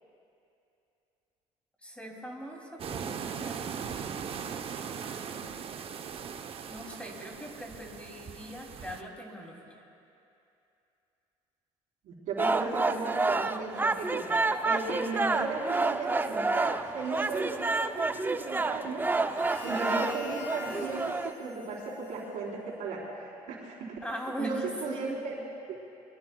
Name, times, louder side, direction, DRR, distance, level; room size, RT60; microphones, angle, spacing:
voice 1, 1.8-5.5 6.7-9.8 24.0-25.2, equal, 10° left, -1 dB, 2.9 m, -41 dB
sound 1, 2.8-9.0, right 7 dB, 45° right, 0.8 m, -39 dB
voice 2, 12.0-14.3 14.6-19.0 19.6-24.0 24.4-25.4 25.7-25.8, right 3 dB, 70° right, -3 dB, 3.9 m, -36 dB
sound 2, 12.4-21.3, right 3 dB, 15° right, 0.6 m, -29 dB
Harmonica, 19.2-23.0, left 5 dB, 90° left, 2.4 m, -46 dB
23.0 x 22.0 x 2.3 m, 2.7 s
supercardioid pair, 85°, 14 cm